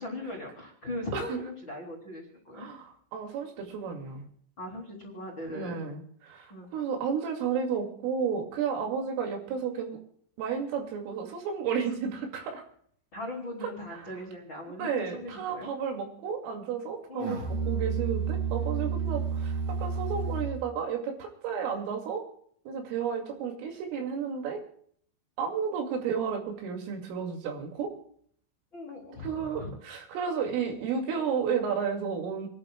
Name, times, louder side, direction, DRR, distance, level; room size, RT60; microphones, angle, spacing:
voice 1, 0.0-2.7 4.6-5.8 6.5-6.7 13.1-15.7 17.1-17.5 28.7-29.7, left 1 dB, 30° left, -3 dB, 2.6 m, -39 dB
voice 2, 2.5-4.3 5.5-10.0 10.4-12.6 13.6-14.0 14.8-22.2 22.7-24.6 25.4-27.9 29.2-32.5, right 6 dB, 80° right, 2 dB, 4.8 m, -32 dB
Musical instrument, 17.2-20.7, right 6 dB, 50° right, 2.9 m, -30 dB
29.0 x 11.5 x 2.3 m, 0.62 s
omnidirectional pair, 5.8 m